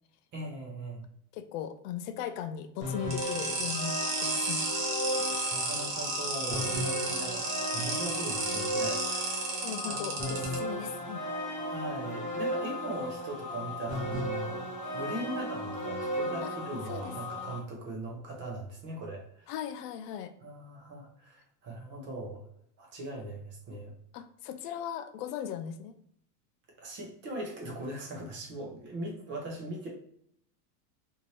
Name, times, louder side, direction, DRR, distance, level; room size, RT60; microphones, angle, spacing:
voice 1, 0.3-1.1 5.5-9.5 9.8-10.4 11.6-14.6 14.9-19.5 20.4-22.4 22.8-23.9 26.8-29.9, right 1 dB, 25° right, -1 dB, 0.6 m, -40 dB
voice 2, 1.3-3.9 4.2-4.9 9.6-11.2 16.4-16.6 16.9-17.1 19.5-20.3 24.1-26.0, left 9 dB, 80° left, 10 dB, 0.6 m, -38 dB
sound 1, 2.8-17.6, left 1 dB, 20° left, 0.4 m, -35 dB
sound 2, 3.1-10.5, right 3 dB, 50° right, 1.2 m, -33 dB
2.8 x 2.6 x 3.0 m, 0.70 s
supercardioid pair, 160°, 46 cm